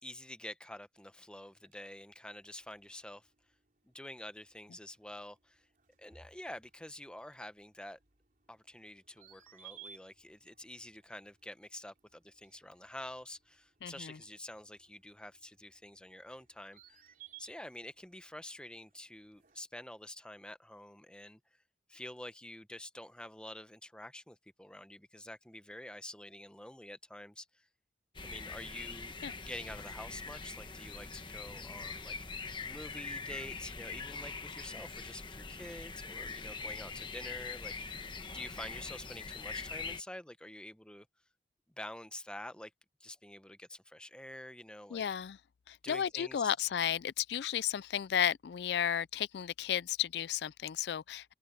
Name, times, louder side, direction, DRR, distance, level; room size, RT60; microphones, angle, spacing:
voice 1, 0.0-3.3 3.8-5.6 6.0-8.0 8.5-17.1 17.4-21.4 21.9-27.7 28.2-29.1 29.4-38.1 38.3-41.1 41.8-42.7 43.0-45.0 45.8-46.5, left 1 dB, 5° left, 0.8 m, -48 dB
sound 1, 1.0-19.6, right 8 dB, 50° right, 3.4 m, -61 dB
voice 2, 13.8-14.2 29.2-29.3 44.9-45.4 45.7-51.3, left 9 dB, 70° left, 0.4 m, -33 dB
sound 2, 28.1-40.0, left 4 dB, 25° left, 1.1 m, -43 dB
head